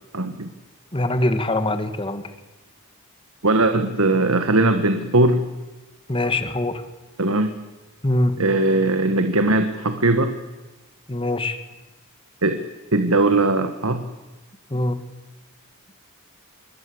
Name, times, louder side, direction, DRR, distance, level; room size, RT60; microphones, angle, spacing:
voice 1, 0.1-0.5 3.4-5.5 7.2-7.5 8.4-10.3 12.4-12.6 12.9-14.0, right 2 dB, 70° right, 8 dB, 1.6 m, -19 dB
voice 2, 0.9-2.2 6.1-6.8 8.0-8.4 11.1-11.6 14.7-15.0, left 1 dB, 25° left, 9 dB, 1.7 m, -23 dB
26.0 x 22.0 x 7.9 m, 1.1 s
head